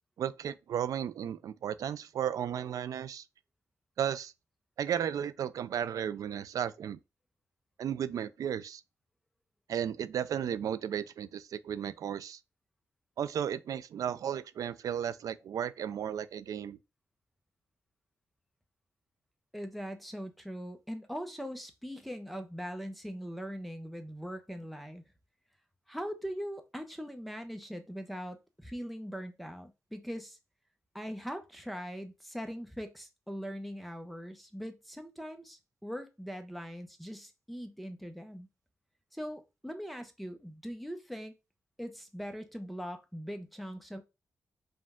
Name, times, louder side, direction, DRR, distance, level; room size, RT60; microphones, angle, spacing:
voice 1, 0.2-3.2 4.0-4.3 4.8-7.0 7.8-8.8 9.7-12.4 13.2-16.8, right 9 dB, 75° right, 0.3 m, -34 dB
voice 2, 19.5-25.0 25.9-30.4 30.9-38.5 39.1-41.3 41.8-44.0, equal, ahead, 0.6 m, -41 dB
5.1 x 2.2 x 3.5 m
wide cardioid pair, 110°, 6 cm